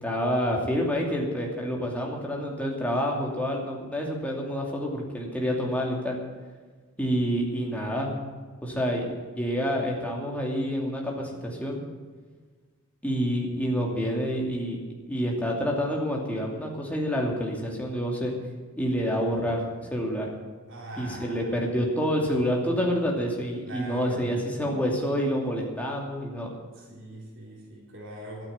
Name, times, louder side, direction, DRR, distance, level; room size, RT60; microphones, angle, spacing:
voice 1, 0.0-6.2 7.0-8.2 8.6-11.8 13.0-14.8 15.1-18.3 18.8-19.6 19.9-20.3 21.0-26.5, equal, 5° left, -2 dB, 2.7 m, -28 dB
voice 2, 20.7-21.7 22.6-23.2 23.7-24.8 26.7-28.5, right 1 dB, 60° right, -3 dB, 3.7 m, -42 dB
12.5 x 9.2 x 9.3 m, 1.5 s
head